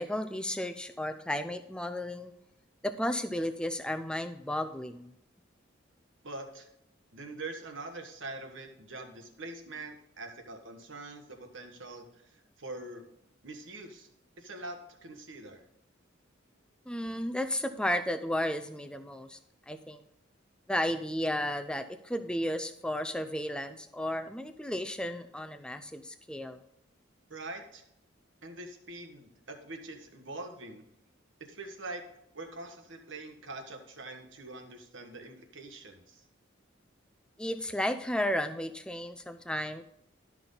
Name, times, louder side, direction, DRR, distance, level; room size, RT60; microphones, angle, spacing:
voice 1, 0.0-2.3 2.8-5.1 16.9-19.4 19.7-20.0 20.7-26.6 37.4-39.8, left 1 dB, 5° left, 8 dB, 0.5 m, -33 dB
voice 2, 6.2-6.7 7.1-13.0 13.4-14.1 14.4-15.6 27.3-27.8 28.4-30.8 31.4-32.0 32.3-36.2, right 2 dB, 75° right, 5 dB, 1.4 m, -44 dB
12.5 x 6.0 x 3.9 m, 0.78 s
head